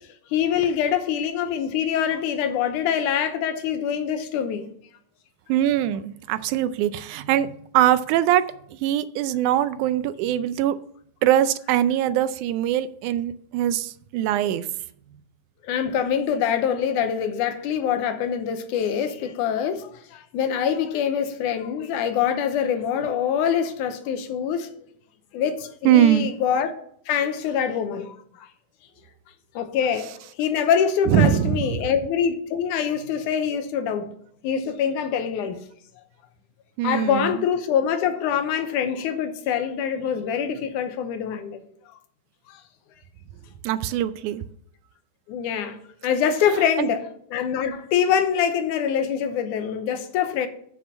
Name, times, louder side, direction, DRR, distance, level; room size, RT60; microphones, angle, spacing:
voice 1, 0.3-4.7 15.6-24.7 25.3-26.7 27.1-28.5 29.6-34.1 34.4-35.6 36.8-41.6 42.5-42.6 45.3-45.8 46.0-50.5, left 8 dB, 85° left, 2.4 m, -24 dB
voice 2, 5.5-8.5 8.8-10.8 11.2-14.7 25.9-26.3 31.1-31.8 36.8-37.4 43.6-44.4 46.8-46.9, right 11 dB, 85° right, 2.0 m, -22 dB
7.5 x 7.0 x 7.1 m
omnidirectional pair, 3.5 m